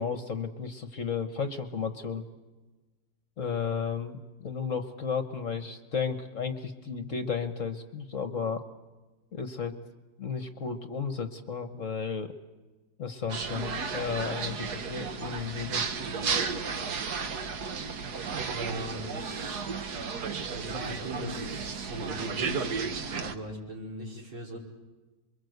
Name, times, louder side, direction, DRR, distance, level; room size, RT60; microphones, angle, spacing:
voice 1, 0.0-2.3 3.4-8.6 9.3-9.8 10.2-12.3 13.0-15.8, left 6 dB, 45° left, 9 dB, 1.3 m, -33 dB
sound 1, 13.3-23.4, right 5 dB, 55° right, 1.5 m, -33 dB
voice 2, 18.5-19.6 20.5-22.7 23.1-24.6, right 1 dB, 85° right, -2 dB, 5.8 m, -39 dB
28.0 x 23.0 x 8.0 m, 1.2 s
omnidirectional pair, 2.2 m